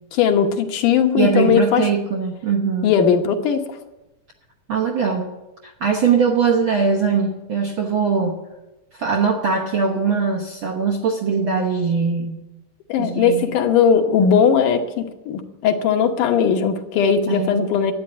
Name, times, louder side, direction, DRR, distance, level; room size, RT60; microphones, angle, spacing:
voice 1, 0.1-1.9 2.8-3.6 12.9-17.9, left 7 dB, 80° left, 5 dB, 2.6 m, -18 dB
voice 2, 1.2-2.9 4.7-5.3 5.6-8.4 8.9-12.4 13.0-13.5 17.3-17.7, right 5 dB, 65° right, 1 dB, 1.3 m, -21 dB
12.0 x 9.5 x 9.0 m, 1.0 s
omnidirectional pair, 3.7 m